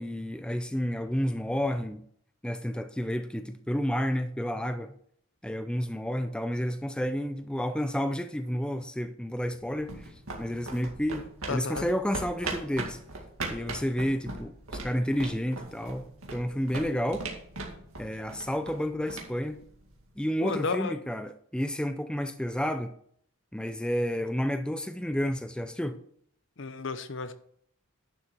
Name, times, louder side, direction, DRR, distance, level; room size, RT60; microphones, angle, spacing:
voice 1, 0.0-2.1 2.4-4.9 5.4-13.0 13.5-14.5 14.8-17.3 18.0-19.6 20.2-22.9 23.5-26.0, equal, 5° left, 0.4 m, -30 dB
sound 1, 9.4-20.2, right 3 dB, 85° right, 2.2 m, -40 dB
voice 2, 11.5-11.9 20.4-20.9 26.6-27.3, left 4 dB, 60° left, 0.8 m, -32 dB
11.0 x 6.8 x 4.4 m
head